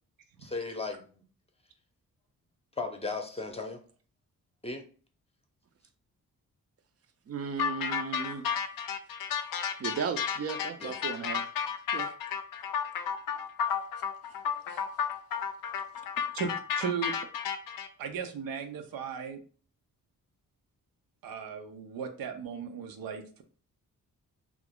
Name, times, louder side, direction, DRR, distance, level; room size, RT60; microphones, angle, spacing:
voice 1, 0.4-1.2 2.8-3.8 4.6-4.8 10.8-11.0, left 3 dB, 20° left, 0.6 m, -36 dB
voice 2, 7.3-8.6 9.8-11.5 11.9-12.2 14.7-14.8, right 6 dB, 45° right, 0.5 m, -35 dB
sound 1, 7.6-17.9, left 7 dB, 75° left, 0.5 m, -32 dB
voice 3, 16.3-17.1 18.0-19.4 21.2-23.4, right 6 dB, 90° right, 0.6 m, -36 dB
2.8 x 2.5 x 3.5 m
cardioid pair, 80°, 34 cm